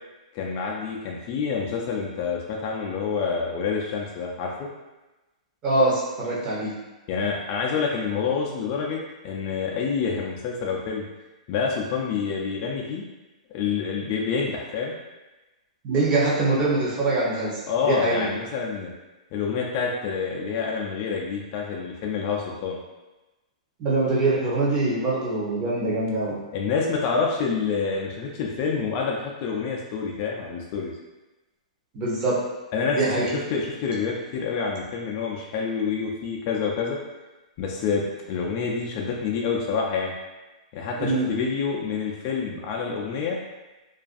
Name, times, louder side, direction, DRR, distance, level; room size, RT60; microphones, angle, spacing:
voice 1, 0.3-4.7 7.1-9.0 9.2-11.0 11.5-13.0 13.5-15.0 17.7-18.9 19.3-22.8 26.5-30.9 32.7-37.0 37.6-40.1 40.7-43.4, left 5 dB, 40° left, -1 dB, 0.3 m, -27 dB
voice 2, 5.6-6.7 15.8-18.3 23.8-26.4 31.9-32.4 32.9-33.3 41.0-41.3, right 2 dB, 30° right, -6 dB, 0.8 m, -24 dB
2.4 x 2.2 x 2.5 m, 1.1 s
hypercardioid pair, 145°, 4 cm